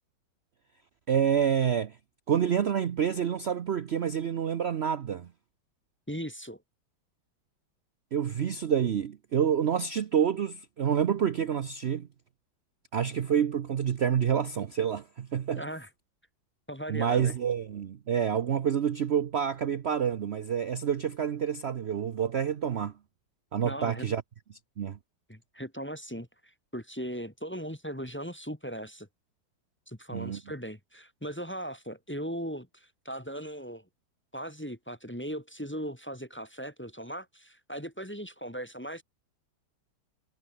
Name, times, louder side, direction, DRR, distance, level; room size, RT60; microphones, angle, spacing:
voice 1, 1.1-2.0 2.3-5.3 8.1-12.1 12.9-15.6 16.9-22.9 23.5-24.2 24.8-25.0 30.1-30.4, right 8 dB, 65° right, 0.6 m, -28 dB
voice 2, 6.1-6.6 15.6-15.9 16.7-17.3 23.6-24.1 25.3-29.1 29.9-33.8 34.3-39.0, equal, 5° left, 1.3 m, -38 dB
omnidirectional pair, 2.2 m